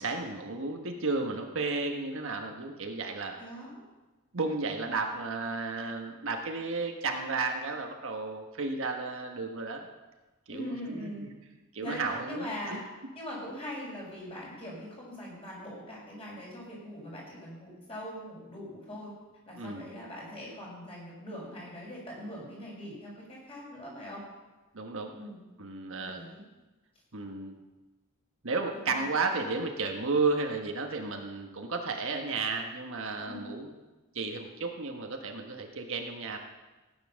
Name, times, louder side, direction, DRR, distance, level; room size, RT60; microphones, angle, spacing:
voice 1, 0.0-3.4 4.3-9.9 10.5-11.1 11.7-12.8 19.6-19.9 24.7-25.1 25.6-26.2 27.1-27.6 28.4-33.7 34.1-36.4, right 3 dB, 60° right, 3 dB, 1.4 m, -33 dB
voice 2, 3.4-3.7 10.5-11.2 11.8-12.8 13.1-19.1 19.5-24.2 25.1-25.4 26.0-26.4 28.7-29.0 33.3-33.5, equal, 25° left, -4 dB, 5.9 m, -41 dB
16.5 x 9.6 x 6.4 m, 1.2 s
head